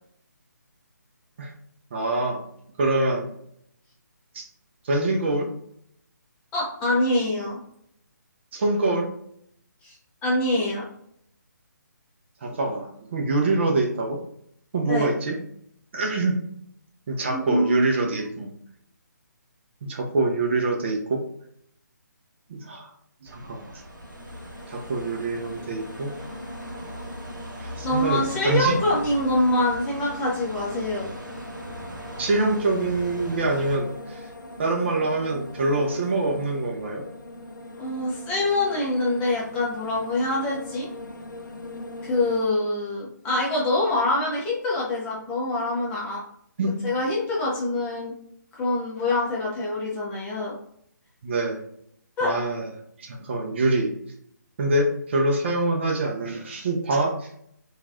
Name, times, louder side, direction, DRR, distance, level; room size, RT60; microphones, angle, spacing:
voice 1, 1.9-2.4 2.8-3.3 4.3-4.5 4.8-5.5 8.5-9.1 12.4-14.2 14.7-15.4 15.9-16.4 17.1-18.5 19.8-21.2 22.5-22.9 23.2-23.7 24.7-26.1 27.6-28.8 32.2-34.2 34.6-37.0 46.6-46.8 51.2-51.6 52.2-52.7 53.0-53.9 54.6-57.3, right 2 dB, 40° right, 1 dB, 0.5 m, -25 dB
voice 2, 6.5-7.6 9.8-10.0 10.2-10.8 14.9-15.1 17.3-18.3 27.8-31.1 37.7-40.9 42.0-46.2 46.8-48.1 48.6-50.6 52.2-52.4, left 2 dB, 10° left, -5 dB, 0.5 m, -25 dB
sound 1, 23.2-33.8, right 1 dB, 85° right, 0.7 m, -40 dB
sound 2, 23.7-42.4, left 1 dB, 85° left, 0.5 m, -41 dB
3.0 x 2.3 x 2.5 m, 0.71 s
figure-of-eight pair, 150°, 10 cm